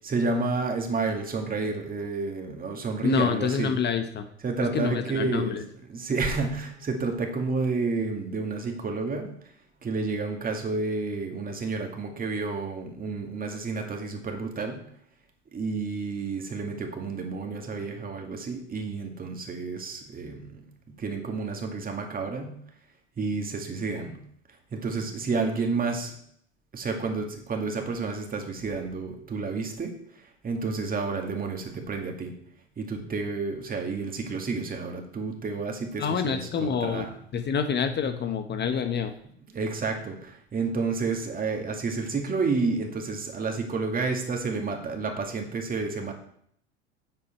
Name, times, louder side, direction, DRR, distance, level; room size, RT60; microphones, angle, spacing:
voice 1, 0.0-3.8 4.4-9.3 9.8-14.8 15.5-20.6 21.0-22.6 23.2-24.2 24.7-26.2 26.7-29.9 30.4-32.3 32.8-37.1 39.5-46.1, right 4 dB, 25° right, 3 dB, 2.3 m, -30 dB
voice 2, 3.0-4.3 4.6-5.6 36.0-39.1, left 6 dB, 30° left, 8 dB, 1.0 m, -27 dB
9.2 x 8.1 x 4.5 m, 0.68 s
hypercardioid pair, 80°, 35 cm